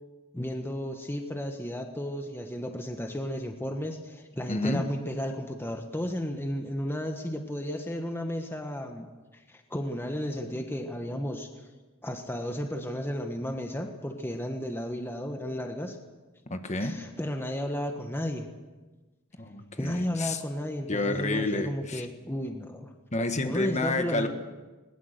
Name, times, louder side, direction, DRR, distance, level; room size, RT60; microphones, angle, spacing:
voice 1, 0.3-9.1 9.5-11.5 12.0-16.0 16.8-18.5 19.8-22.9 23.4-24.3, equal, 10° left, 4 dB, 1.3 m, -33 dB
voice 2, 4.5-4.9 16.5-17.0 19.4-20.4 20.9-22.1 23.1-24.3, left 2 dB, 30° left, 7 dB, 1.5 m, -29 dB
21.0 x 20.0 x 6.7 m, 1.2 s
head